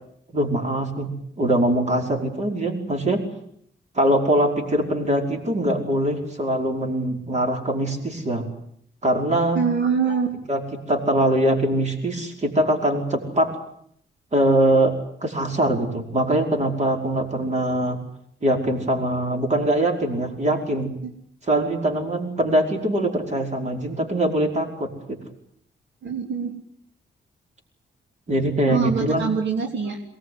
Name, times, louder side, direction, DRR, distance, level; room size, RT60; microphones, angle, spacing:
voice 1, 0.3-1.1 1.4-3.2 4.0-8.5 9.0-9.6 10.5-10.6 10.9-13.5 14.3-14.9 15.2-18.0 18.4-20.9 21.5-25.2 28.3-29.3, right 1 dB, 35° right, 3 dB, 5.3 m, -22 dB
voice 2, 9.5-10.3 21.0-21.1 26.0-26.5 28.7-30.0, right 6 dB, 70° right, 3 dB, 3.2 m, -24 dB
23.5 x 19.5 x 9.7 m, 0.70 s
cardioid pair, 120°, 19 cm